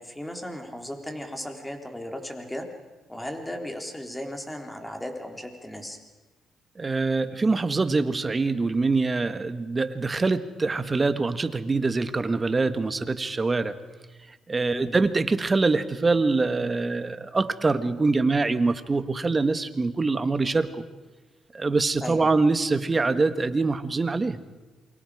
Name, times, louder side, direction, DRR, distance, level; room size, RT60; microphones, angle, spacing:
voice 1, 0.0-2.7 3.1-6.0 14.6-15.0 22.0-22.3, left 1 dB, 10° left, 4 dB, 3.6 m, -36 dB
voice 2, 6.8-13.8 14.5-20.8 21.5-24.4, right 3 dB, 25° right, 11 dB, 1.5 m, -24 dB
28.0 x 24.0 x 4.9 m, 1.2 s
cardioid pair, 90°, 0 cm